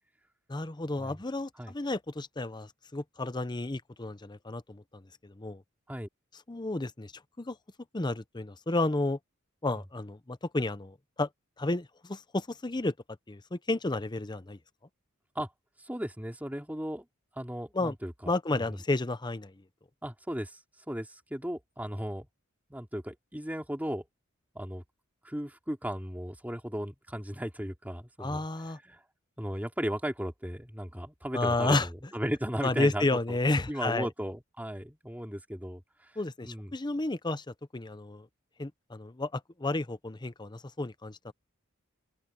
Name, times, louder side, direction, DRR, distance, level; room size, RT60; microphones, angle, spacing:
voice 1, 0.5-5.6 6.5-7.1 7.4-7.6 7.9-9.2 9.6-11.3 11.6-12.9 13.3-14.6 17.7-18.0 18.3-19.5 28.2-28.8 31.3-31.9 32.6-34.1 36.2-38.3 38.6-41.3, left 2 dB, 20° left, 0.8 m, -31 dB
voice 2, 15.8-17.1 17.3-18.8 20.0-20.6 20.9-22.3 22.7-24.1 24.5-24.8 25.2-29.0 29.4-33.4 33.7-35.8 36.4-36.7, equal, 10° right, 3.0 m, -36 dB
open air
head